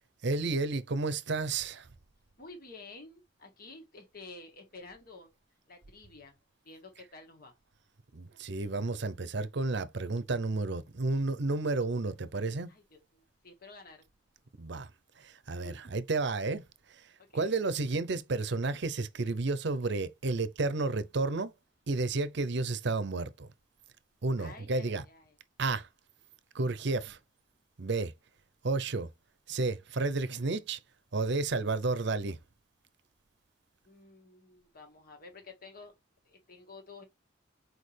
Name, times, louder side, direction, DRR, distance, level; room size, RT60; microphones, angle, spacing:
voice 1, 0.2-1.9 8.1-12.7 14.6-14.9 15.2-17.1 17.3-21.5 21.9-23.5 24.2-25.0 25.6-25.9 26.5-27.2 27.8-28.1 28.6-29.1 29.5-30.8 31.1-32.4, right 3 dB, 65° right, 0.7 m, -31 dB
voice 2, 2.4-5.3 5.7-6.4 6.6-7.5 12.7-14.1 15.6-15.8 17.3-17.5 24.4-25.3 33.9-35.9 36.2-37.0, left 3 dB, 50° left, 1.8 m, -51 dB
6.4 x 4.7 x 3.3 m
head